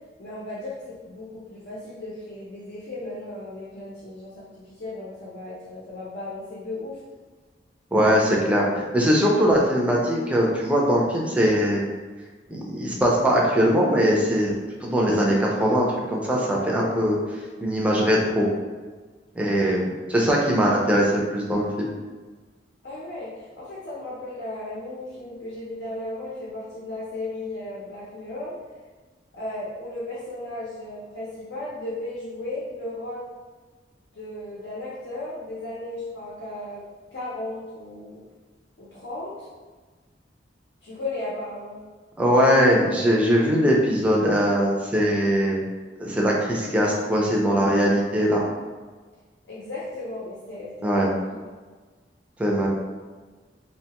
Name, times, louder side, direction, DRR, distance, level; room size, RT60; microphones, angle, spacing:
voice 1, 0.2-7.0 22.8-28.5 29.3-33.2 34.1-36.8 37.1-38.2 38.8-39.5 40.8-41.8 49.5-51.4, left 2 dB, 75° left, -7 dB, 0.7 m, -35 dB
voice 2, 7.9-11.8 12.5-14.5 14.8-17.2 17.6-18.5 19.4-21.9 42.2-45.6 46.0-48.4 50.8-51.1 52.4-52.7, equal, 5° right, -3 dB, 0.4 m, -21 dB
2.8 x 2.2 x 2.8 m, 1.4 s
head